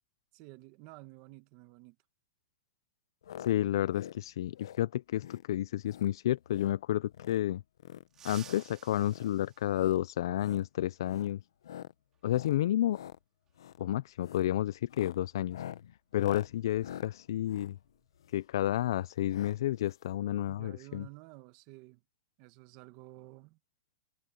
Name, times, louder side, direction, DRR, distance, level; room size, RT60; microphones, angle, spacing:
voice 1, 0.3-2.0 20.5-22.0 22.4-23.6, right 20 dB, 35° right, 1.3 m, -52 dB
sound 1, 3.2-3.5 3.8-4.2 4.5-4.8 5.2-5.5 5.8-6.1 6.4-6.8 7.1-7.4 7.8-8.7 9.1-9.3 9.7-10.0 10.3-10.7 11.0-11.3 11.6-11.9 12.3-12.6 12.9-13.2 13.5-13.8 14.2-14.5 14.8-18.5 19.3-19.6 19.8-19.9 20.1-20.2, left 10 dB, 90° left, 0.9 m, -46 dB
voice 2, 3.4-7.6 8.2-11.4 12.2-13.0 13.8-15.6 16.1-17.8 18.3-21.1, left 12 dB, 65° left, 0.4 m, -31 dB
sound 2, 8.1-10.5 12.1-12.2 13.5-13.6 15.2-15.3 15.7-15.9 16.4-18.6 18.8-19.1 19.5-20.0, right 9 dB, 20° right, 3.4 m, -56 dB
supercardioid pair, 165°, 2 cm